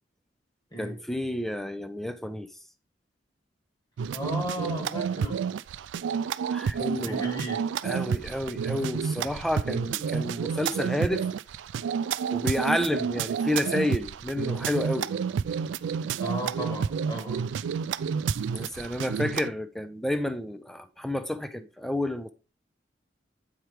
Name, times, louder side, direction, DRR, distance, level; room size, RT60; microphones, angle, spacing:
voice 1, 0.8-2.5 6.5-7.3 7.8-11.3 12.3-15.1 18.5-22.3, left 1 dB, ahead, 0.5 m, -30 dB
sound 1, 4.0-19.5, right 6 dB, 80° right, 0.3 m, -30 dB
voice 2, 4.1-5.4 7.0-7.6 16.2-17.4, equal, 25° left, 1.7 m, -35 dB
8.7 x 4.5 x 3.2 m
head